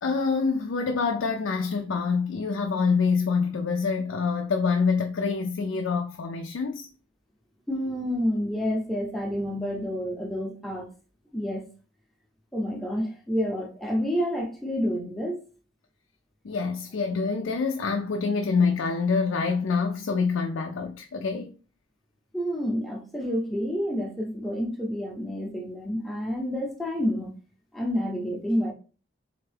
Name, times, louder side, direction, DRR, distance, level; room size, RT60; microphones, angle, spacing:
voice 1, 0.0-6.9 16.4-21.5, left 5 dB, 65° left, 0.4 m, -26 dB
voice 2, 7.7-10.9 11.3-11.6 12.5-15.4 22.3-27.3 27.7-28.7, equal, ahead, 0.6 m, -29 dB
3.6 x 3.4 x 3.3 m
head